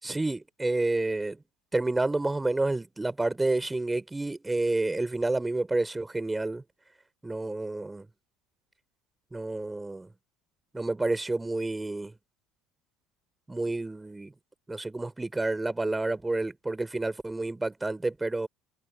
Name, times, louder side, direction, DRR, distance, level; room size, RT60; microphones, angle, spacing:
voice 1, 0.0-1.4 1.7-6.6 7.2-8.1 9.3-10.1 10.7-12.1 13.5-14.3 14.7-18.5, right 2 dB, 10° right, 4.6 m, -29 dB
figure-of-eight pair, 65°, 0 cm